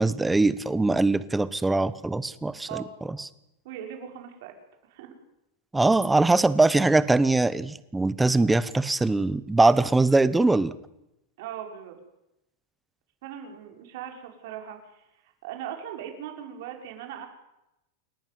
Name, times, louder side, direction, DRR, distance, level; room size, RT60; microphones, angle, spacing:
voice 1, 0.0-3.3 5.7-10.7, right 2 dB, 5° right, 16 dB, 1.0 m, -22 dB
voice 2, 3.6-4.5 4.9-5.1 11.4-12.0 13.2-15.0 15.4-17.3, right 10 dB, 65° right, 4 dB, 5.6 m, -39 dB
29.0 x 11.0 x 9.5 m, 0.88 s
supercardioid pair, 145°, 0 cm